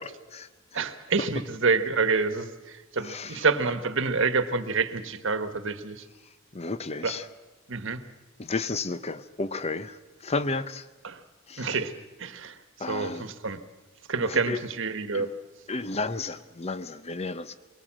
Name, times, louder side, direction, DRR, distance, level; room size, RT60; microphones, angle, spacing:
voice 1, 0.7-5.9 7.0-7.2 7.7-8.0 11.0-11.2 11.6-11.9 12.2-12.6 12.9-13.6 14.1-15.3, right 4 dB, 60° right, 10 dB, 1.4 m, -27 dB
voice 2, 3.0-3.4 6.5-7.2 8.4-10.0 10.2-10.8 11.5-11.7 12.8-13.3 14.2-14.6 15.1-15.3 15.7-17.5, left 3 dB, 30° left, 14 dB, 0.8 m, -32 dB
22.5 x 19.5 x 7.5 m, 1.2 s
head